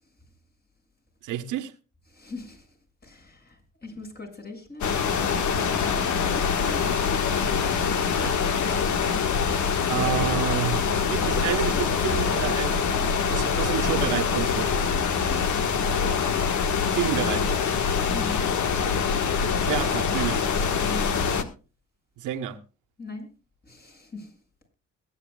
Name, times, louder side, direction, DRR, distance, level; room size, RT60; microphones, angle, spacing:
voice 1, 1.2-1.7 8.0-8.4 9.9-14.7 16.9-17.5 19.6-20.4 22.2-22.6, right 11 dB, 90° right, 1.4 m, -29 dB
voice 2, 2.1-2.8 3.0-5.0 6.6-7.0 15.3-15.5 18.0-18.5 20.8-21.5 23.0-23.3 23.6-24.4, left 3 dB, 30° left, 7.3 m, -40 dB
sound 1, 4.8-21.4, left 6 dB, 70° left, 1.8 m, -24 dB
22.0 x 10.0 x 2.4 m
cardioid pair, 90°, 30 cm